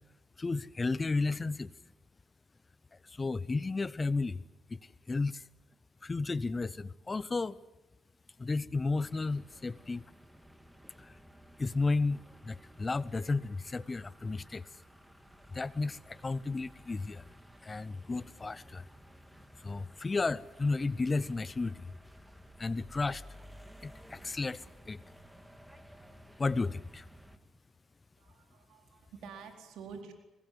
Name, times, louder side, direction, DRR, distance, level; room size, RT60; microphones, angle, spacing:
voice 1, 0.4-1.7 3.0-4.4 4.7-4.8 5.1-5.4 6.0-7.6 8.4-10.0 11.0-11.1 11.6-14.6 15.5-17.2 17.6-18.8 19.6-21.9 22.6-23.2 23.8-25.0 26.4-27.1, left 3 dB, 25° left, 0.8 m, -33 dB
sound 1, 9.0-27.4, equal, 5° right, 2.1 m, -55 dB
voice 2, 28.2-30.1, right 6 dB, 85° right, 4.3 m, -48 dB
24.0 x 20.0 x 9.5 m
cardioid pair, 90°, 0 cm